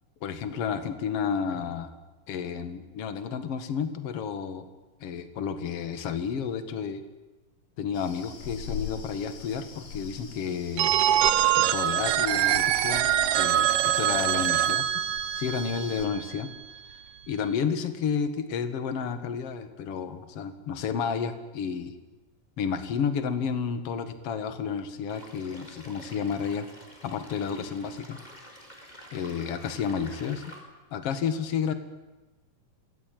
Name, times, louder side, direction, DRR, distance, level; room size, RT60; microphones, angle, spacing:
voice 1, 0.2-1.9 2.3-4.6 5.0-7.0 7.8-10.9 11.6-13.1 13.3-15.0 15.3-16.5 17.3-21.9 22.6-26.7 27.0-28.2 29.1-30.5 30.9-31.7, left 6 dB, 50° left, 10 dB, 2.6 m, -31 dB
sound 1, 7.9-16.1, left 6 dB, 85° left, 4.9 m, -42 dB
Telephone, 10.8-16.5, right 11 dB, 70° right, 2.2 m, -24 dB
sound 2, 25.1-30.6, equal, 10° left, 5.0 m, -48 dB
27.0 x 20.5 x 9.4 m, 1.2 s
omnidirectional pair, 3.7 m